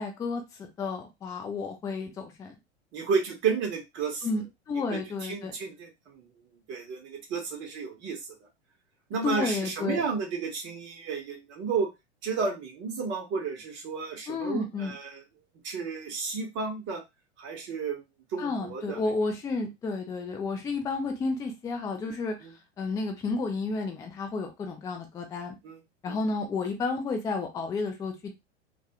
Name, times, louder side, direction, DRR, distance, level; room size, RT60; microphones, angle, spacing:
voice 1, 0.0-2.5 4.2-5.5 9.2-10.0 14.3-14.9 18.4-22.4 22.8-25.5 26.0-28.4, left 3 dB, 10° left, 4 dB, 0.4 m, -31 dB
voice 2, 2.9-4.3 4.7-6.3 6.7-8.2 9.1-11.9 12.2-15.2 15.6-17.0 17.4-18.0 18.3-19.0 22.4-22.5 25.6-25.8 26.1-26.2, right 5 dB, 35° right, 1 dB, 0.9 m, -32 dB
2.3 x 2.2 x 2.7 m, 0.22 s
figure-of-eight pair, 90°, 35 cm